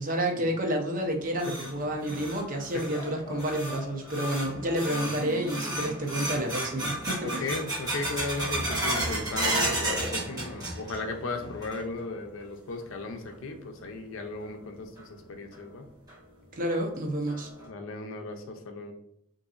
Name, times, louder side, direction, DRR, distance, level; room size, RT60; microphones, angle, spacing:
voice 1, 0.0-7.5 16.5-17.5, right 1 dB, 40° right, 2 dB, 0.7 m, -30 dB
sound 1, 1.0-11.2 11.4-12.0 12.4-12.5 13.3-13.4 15.0-15.1 15.5-15.6 16.1-16.2 16.7-16.8 17.3-17.7, right 1 dB, 20° right, 0.9 m, -33 dB
sound 2, 1.7-11.7, left 1 dB, 20° left, 0.3 m, -48 dB
Acoustic guitar / Strum, 5.2-11.4 11.8-11.9, right 2 dB, 85° right, 0.5 m, -47 dB
voice 2, 7.2-15.8 17.7-18.9, left 3 dB, 70° left, 4 dB, 0.5 m, -36 dB
3.8 x 2.6 x 2.4 m, 0.74 s
head